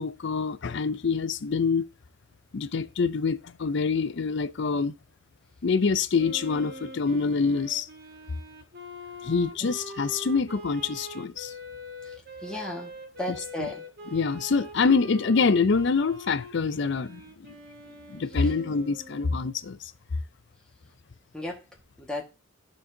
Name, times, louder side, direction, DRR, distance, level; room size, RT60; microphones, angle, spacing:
voice 1, 0.0-1.8 2.5-4.9 5.6-7.9 9.2-11.5 13.6-13.7 14.1-17.2 18.1-19.8, left 4 dB, 60° left, 0.5 m, -25 dB
Wind instrument woodwind instrument, 6.2-19.6, left 1 dB, 50° right, 1.5 m, -43 dB
voice 2, 12.4-12.9 13.2-13.8 21.3-21.6 22.0-22.2, left 1 dB, 5° left, 1.7 m, -33 dB
13.5 x 4.5 x 2.8 m
head